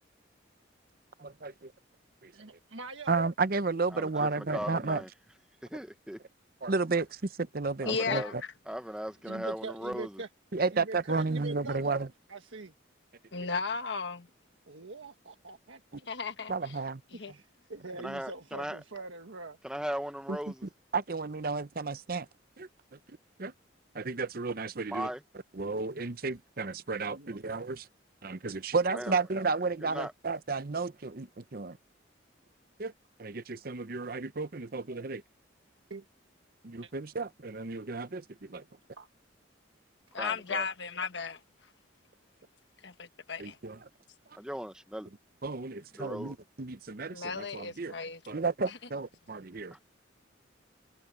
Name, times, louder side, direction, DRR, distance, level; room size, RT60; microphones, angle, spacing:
voice 1, 1.2-1.7 2.2-2.3 3.1-5.0 6.6-8.2 10.5-12.1 16.5-17.0 20.3-20.4 20.9-22.3 22.6-22.7 23.4-23.5 23.9-25.1 25.6-27.9 28.2-31.8 32.8-32.9 33.2-35.2 36.6-38.6 43.4-43.8 45.4-47.9 48.3-49.8, right 4 dB, 50° right, 0.8 m, -32 dB
voice 2, 2.3-3.2 9.3-10.3 10.7-12.7 14.7-16.1 17.1-19.6 27.1-27.4 35.9-36.0 36.8-36.9 39.0-39.1, right 3 dB, 85° right, 1.6 m, -43 dB
voice 3, 3.9-5.1 5.7-6.2 7.8-8.3 8.7-10.2 18.0-18.8 19.6-20.6 24.9-25.2 28.9-29.2 29.8-30.1 40.2-40.7 44.3-45.1 46.0-46.3 49.7-49.8, equal, 5° right, 0.9 m, -38 dB
voice 4, 7.9-8.3 13.3-14.3 16.1-16.8 17.1-17.3 40.1-41.4 42.8-43.6 47.1-48.2 48.7-48.8, left 5 dB, 65° left, 1.3 m, -35 dB
head